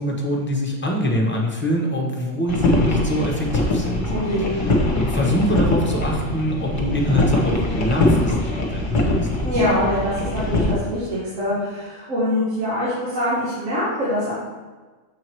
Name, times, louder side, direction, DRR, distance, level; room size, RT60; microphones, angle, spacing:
voice 1, 0.0-4.1 4.6-4.7 5.1-9.3, equal, 10° left, -1 dB, 1.0 m, -24 dB
sound 1, 2.5-10.7, left 2 dB, 40° left, 1.2 m, -22 dB
voice 2, 4.1-4.5 9.4-14.3, left 1 dB, 80° right, -9 dB, 1.9 m, -24 dB
6.7 x 4.8 x 4.5 m, 1.3 s
omnidirectional pair, 1.3 m